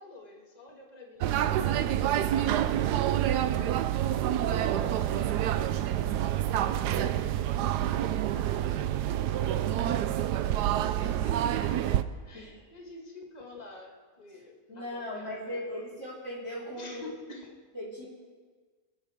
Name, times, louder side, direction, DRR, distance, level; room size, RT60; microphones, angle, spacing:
voice 1, 0.0-9.7 10.3-11.8 12.3-15.9 16.8-17.5, left 3 dB, 25° left, -1 dB, 2.0 m, -50 dB
sound 1, 1.2-12.0, right 11 dB, 85° right, 1.2 m, -27 dB
voice 2, 14.7-17.0 17.7-18.1, left 1 dB, 45° left, -6 dB, 4.6 m, -38 dB
27.5 x 10.0 x 3.6 m, 1.5 s
omnidirectional pair, 1.7 m